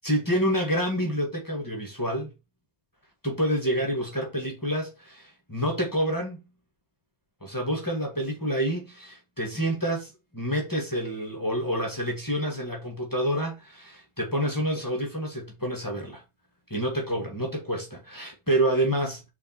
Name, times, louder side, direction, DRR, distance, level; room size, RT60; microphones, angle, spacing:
voice 1, 0.0-2.3 3.2-6.4 7.4-16.2 16.7-19.3, equal, 20° left, 1.8 m, -28 dB
5.0 x 4.1 x 4.5 m
omnidirectional pair, 1.1 m